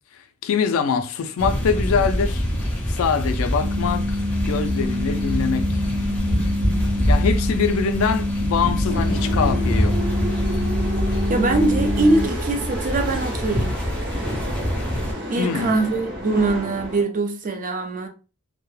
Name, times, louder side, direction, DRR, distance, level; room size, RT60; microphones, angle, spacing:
voice 1, 0.4-2.4 2.9-4.2 4.5-5.6 7.1-9.9 15.4-15.8, left 6 dB, 75° left, 0.4 m, -23 dB
sound 1, 1.4-15.1, equal, 5° left, 0.6 m, -25 dB
sound 2, 3.6-12.3, left 2 dB, 80° right, 0.7 m, -27 dB
sound 3, 8.9-17.0, equal, 55° right, 0.8 m, -30 dB
voice 2, 11.3-13.8 15.3-18.1, right 2 dB, 40° right, 0.5 m, -22 dB
2.2 x 2.1 x 3.1 m
head